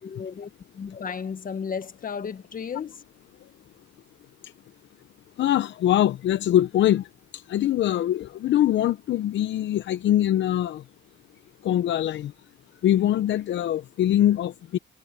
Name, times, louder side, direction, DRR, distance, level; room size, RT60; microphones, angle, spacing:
voice 1, 0.0-3.0, left 6 dB, 45° left, 1.6 m, -34 dB
voice 2, 5.4-7.1 7.3-10.8 11.6-12.3 12.8-14.8, left 12 dB, 65° left, 0.7 m, -23 dB
cardioid pair, 90°, 20 cm